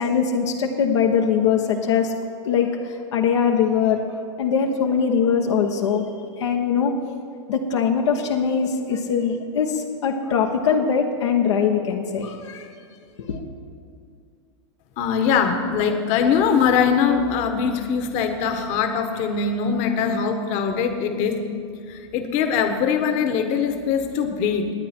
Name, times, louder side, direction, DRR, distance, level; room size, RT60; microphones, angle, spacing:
voice 1, 0.0-2.1 2.4-2.8 3.1-4.0 4.4-6.1 6.4-6.9 7.5-12.7 13.2-13.4, left 6 dB, 80° left, 2 dB, 1.2 m, -21 dB
voice 2, 15.0-21.4 21.9-24.7, left 6 dB, 50° left, 7 dB, 1.4 m, -22 dB
20.0 x 8.7 x 4.4 m, 2.3 s
hypercardioid pair, 110°, 15 cm